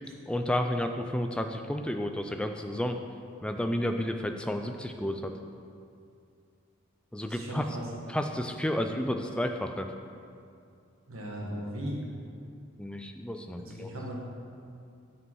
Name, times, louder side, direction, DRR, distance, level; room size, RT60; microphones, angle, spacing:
voice 1, 0.3-3.0 3.4-5.3 7.1-7.6 8.1-9.9 12.8-13.9, left 1 dB, 5° left, 5 dB, 0.3 m, -31 dB
voice 2, 7.3-7.8 11.1-12.0 13.6-14.1, equal, 90° right, -3 dB, 1.7 m, -37 dB
9.8 x 5.4 x 4.7 m, 2.4 s
head